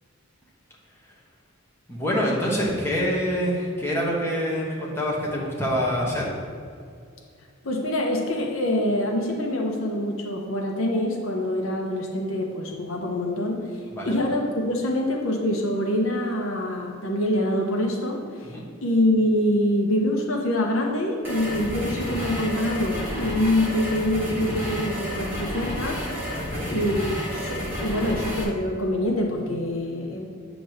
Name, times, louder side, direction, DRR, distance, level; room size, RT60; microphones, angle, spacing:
voice 1, 1.9-6.3 13.9-14.2 18.4-18.6 26.3-26.7, equal, 10° left, -5 dB, 1.3 m, -26 dB
voice 2, 7.6-18.5 18.8-26.0 26.7-30.2, left 1 dB, 65° left, 0 dB, 1.0 m, -25 dB
sound 1, 21.2-28.4, equal, 10° right, 1.5 m, -31 dB
8.7 x 3.0 x 6.4 m, 2.3 s
head